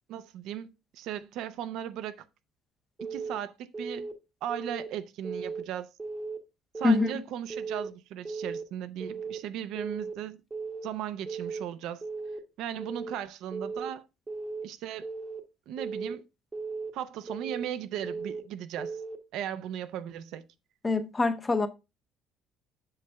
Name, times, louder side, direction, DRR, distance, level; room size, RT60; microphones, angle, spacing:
voice 1, 0.1-2.3 3.1-4.1 4.4-5.9 6.7-10.4 10.8-12.0 12.6-14.0 14.6-15.1 15.7-16.3 16.9-19.0 19.3-20.5, right 10 dB, 65° right, 0.5 m, -37 dB
Keyboard (musical) / Alarm, 3.0-3.4 3.7-4.1 4.5-4.9 5.2-5.6 6.0-6.4 6.7-7.1 7.5-7.9 8.2-8.6 9.0-9.4 9.7-10.1 10.5-10.9 11.3-11.6 12.0-12.4 12.8-13.1 13.5-13.9 14.3-14.6 15.0-15.4 15.8-16.1 16.5-16.9 17.3-17.6 18.0-18.4 18.8-19.2, right 4 dB, 15° right, 0.9 m, -36 dB
voice 2, 20.8-21.7, left 3 dB, 15° left, 0.7 m, -24 dB
7.8 x 6.7 x 2.2 m
cardioid pair, 170°, 0 cm